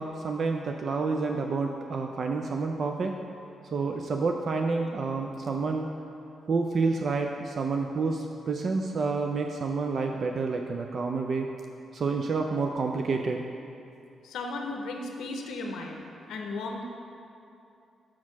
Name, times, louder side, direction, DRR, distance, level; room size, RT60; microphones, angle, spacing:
voice 1, 0.0-3.2 3.7-5.9 6.5-11.5 11.9-13.4, right 4 dB, 50° right, 3 dB, 0.3 m, -29 dB
voice 2, 14.2-16.0 16.3-16.8, left 2 dB, 85° left, 2 dB, 0.6 m, -35 dB
5.8 x 4.4 x 6.0 m, 2.6 s
cardioid pair, 105°, 0 cm